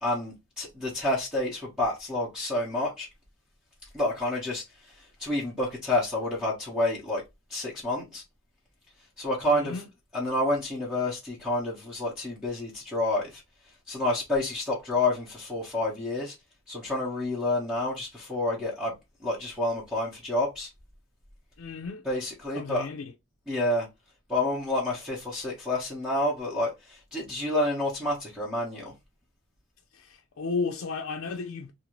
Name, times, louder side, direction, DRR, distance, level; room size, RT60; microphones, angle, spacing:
voice 1, 0.0-3.1 3.9-7.2 7.5-8.2 9.2-9.8 10.1-13.4 13.9-16.3 16.7-18.9 19.2-20.7 22.0-22.9 23.5-23.9 24.3-28.9, left 1 dB, 5° right, 0.9 m, -29 dB
voice 2, 9.5-9.8 21.6-22.0 22.5-23.0 29.9-31.7, left 4 dB, 75° left, 0.4 m, -33 dB
2.6 x 2.6 x 2.9 m
head